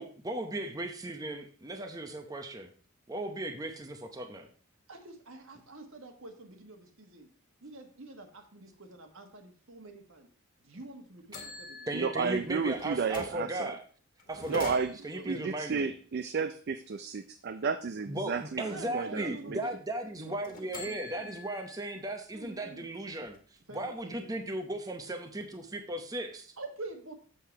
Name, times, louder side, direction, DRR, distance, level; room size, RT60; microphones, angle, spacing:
voice 1, 0.0-2.7 3.1-4.5 11.9-13.8 14.3-14.7 15.0-15.9 18.0-23.4 23.7-26.5, right 1 dB, 15° right, 5 dB, 0.7 m, -36 dB
voice 2, 4.9-7.3 7.6-10.3 10.6-12.0 14.4-14.5 15.1-15.4 18.6-19.8 20.0-21.4 22.3-22.9 23.7-24.3 26.6-27.2, right 2 dB, 65° right, 5 dB, 1.5 m, -47 dB
sound 1, 10.7-10.8 11.3-13.5 14.2-15.3 20.4-22.0 22.4-22.5 22.9-24.0, left 3 dB, 40° left, 1.6 m, -46 dB
voice 3, 11.9-13.7 14.5-14.9 15.2-19.6, right 5 dB, 50° right, 10 dB, 0.4 m, -32 dB
7.6 x 6.7 x 4.5 m, 0.41 s
head